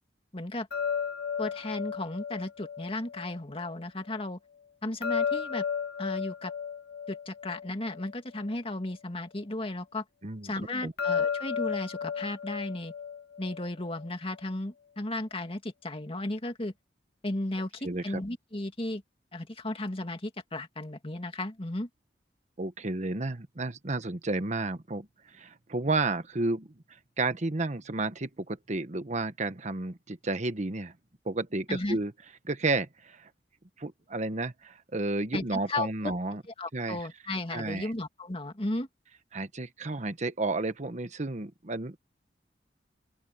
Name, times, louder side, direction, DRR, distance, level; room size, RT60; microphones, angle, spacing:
voice 1, 0.3-0.7 1.4-4.4 4.8-5.6 6.0-6.5 7.1-10.0 10.4-12.9 13.4-16.7 17.2-19.0 19.3-21.9 31.7-32.0 35.3-36.1 36.6-38.9, left 2 dB, 35° left, 2.3 m, -34 dB
sound 1, 0.7-3.8 5.0-8.5 11.0-14.1, left 7 dB, 65° left, 1.6 m, -34 dB
voice 2, 10.2-10.9 17.8-18.2 22.6-26.7 27.2-30.9 31.2-32.1 32.4-33.3 33.8-36.4 36.7-37.0 37.5-37.9 39.3-42.0, right 2 dB, 45° right, 1.2 m, -32 dB
open air
head